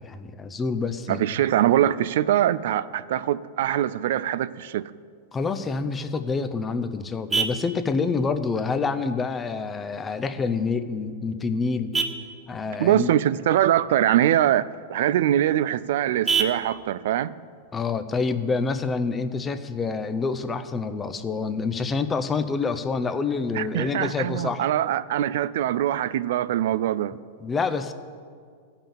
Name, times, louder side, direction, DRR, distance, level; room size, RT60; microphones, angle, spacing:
voice 1, 0.0-1.2 5.3-11.9 12.5-13.1 17.7-24.7 27.4-27.9, left 4 dB, 15° left, 0.6 m, -27 dB
voice 2, 1.1-4.9 12.8-17.3 23.5-27.2, right 12 dB, 70° right, 0.4 m, -23 dB
Vehicle horn car horn honking, 6.0-19.0, right 5 dB, 10° right, 0.8 m, -35 dB
15.0 x 5.7 x 7.1 m
supercardioid pair, 140°, 0 cm